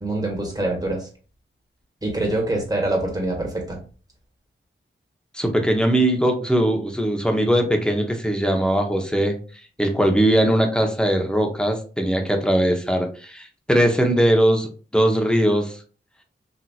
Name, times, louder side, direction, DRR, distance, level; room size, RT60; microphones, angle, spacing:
voice 1, 0.0-1.1 2.0-3.8, right 2 dB, 20° right, 0 dB, 1.5 m, -25 dB
voice 2, 5.3-9.3 9.8-15.7, right 1 dB, 5° left, 3 dB, 0.9 m, -20 dB
4.2 x 2.8 x 2.3 m, 0.38 s
cardioid pair, 60°, 21 cm